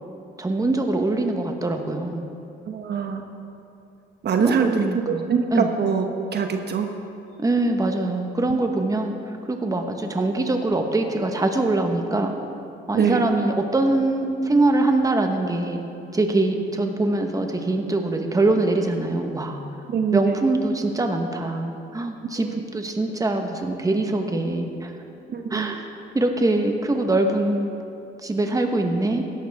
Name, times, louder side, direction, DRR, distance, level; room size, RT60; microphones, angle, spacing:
voice 1, 0.4-2.2 4.4-5.2 5.5-5.7 7.4-12.3 12.9-15.8 16.1-19.6 20.1-24.9 25.5-25.8 26.1-27.7 28.2-29.2, right 2 dB, 15° right, 4 dB, 1.2 m, -23 dB
voice 2, 2.7-3.2 4.2-6.9 8.5-8.6 12.9-13.3 19.9-20.3 22.4-22.6 25.3-25.7, right 6 dB, 55° right, 5 dB, 1.0 m, -24 dB
16.0 x 12.0 x 3.6 m, 2.7 s
cardioid pair, 90°, 20 cm